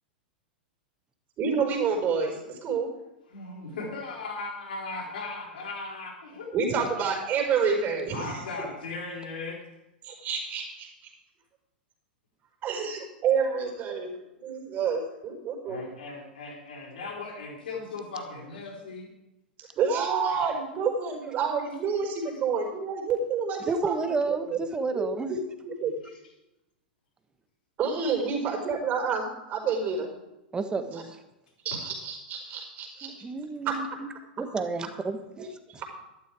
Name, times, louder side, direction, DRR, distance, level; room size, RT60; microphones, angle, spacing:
voice 1, 1.4-2.9 6.5-8.7 10.0-10.9 12.6-14.2 14.4-15.8 19.6-24.6 24.9-25.4 25.8-25.9 27.8-30.1 30.9-31.0 31.6-33.1 33.6-33.7 35.4-35.8, right 5 dB, 35° right, 1 dB, 4.7 m, -29 dB
voice 2, 3.3-6.5 8.1-9.6 15.6-19.1 22.2-22.3, left 3 dB, 70° left, -2 dB, 5.0 m, -37 dB
voice 3, 23.7-25.3 30.5-31.2 33.0-33.9 34.4-35.5, right 4 dB, 15° right, 9 dB, 1.4 m, -31 dB
12.5 x 11.5 x 5.0 m, 0.93 s
figure-of-eight pair, 95°, 5 cm